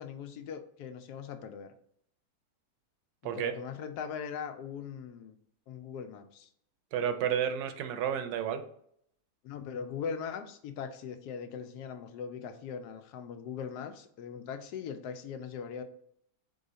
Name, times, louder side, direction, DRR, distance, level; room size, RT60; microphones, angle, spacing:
voice 1, 0.0-1.7 3.2-5.4 5.7-6.5 9.4-15.8, left 7 dB, 85° left, 8 dB, 1.2 m, -40 dB
voice 2, 3.2-3.5 6.9-8.6, right 9 dB, 80° right, 9 dB, 1.1 m, -31 dB
3.9 x 3.5 x 4.0 m, 0.68 s
omnidirectional pair, 1.7 m